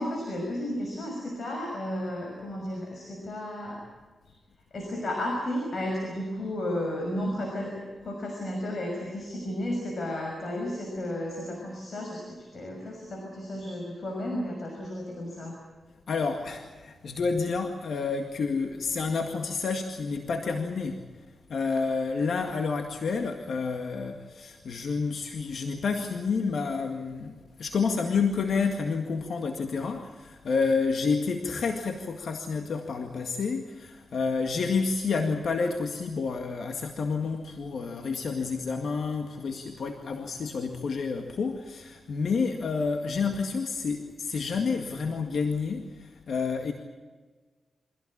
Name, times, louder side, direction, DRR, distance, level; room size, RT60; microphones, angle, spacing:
voice 1, 0.0-3.8 4.7-15.6, left 1 dB, 55° left, 1 dB, 6.0 m, -33 dB
voice 2, 16.1-21.0 21.5-46.7, left 4 dB, 75° left, 4 dB, 2.0 m, -29 dB
25.0 x 16.5 x 8.7 m, 1.4 s
cardioid pair, 80°, 0 cm